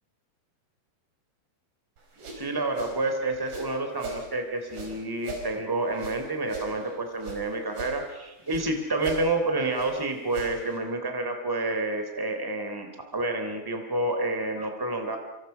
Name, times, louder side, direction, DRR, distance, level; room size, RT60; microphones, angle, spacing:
sound 1, 2.0-4.3 4.7-7.4 7.7-8.7 9.0-10.8, right 3 dB, 70° right, 7.3 m, -39 dB
voice 1, 2.3-15.2, right 2 dB, 5° right, 5 dB, 2.5 m, -29 dB
27.0 x 26.5 x 5.8 m, 1.0 s
omnidirectional pair, 5.2 m